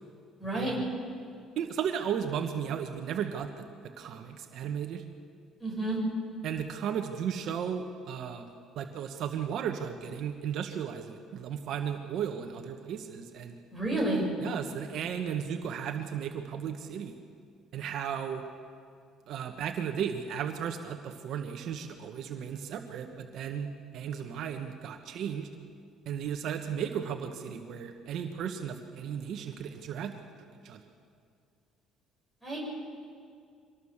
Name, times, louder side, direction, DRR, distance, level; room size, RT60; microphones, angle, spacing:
voice 1, 0.4-0.7 5.6-6.0 13.7-14.3 32.4-32.6, right 2 dB, 10° left, -2 dB, 7.1 m, -30 dB
voice 2, 1.6-3.5 3.8-5.0 6.4-8.5 8.7-13.6 14.4-17.1 17.7-18.4 19.3-25.5 26.1-30.1 30.6-30.8, right 8 dB, 55° right, 5 dB, 1.4 m, -35 dB
24.5 x 19.5 x 7.4 m, 2.3 s
cardioid pair, 155°, 0 cm